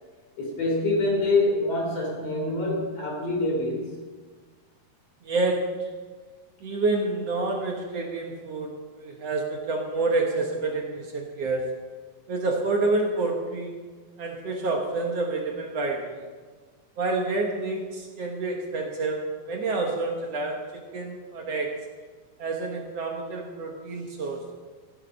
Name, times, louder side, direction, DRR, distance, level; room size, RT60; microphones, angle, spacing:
voice 1, 0.4-3.9, left 2 dB, 45° left, -1 dB, 4.1 m, -25 dB
voice 2, 5.2-5.9 6.6-11.7 12.3-13.8 14.2-16.3 17.0-21.8 22.4-24.5, right 3 dB, 60° right, 1 dB, 1.8 m, -28 dB
16.0 x 9.5 x 5.4 m, 1.4 s
omnidirectional pair, 4.3 m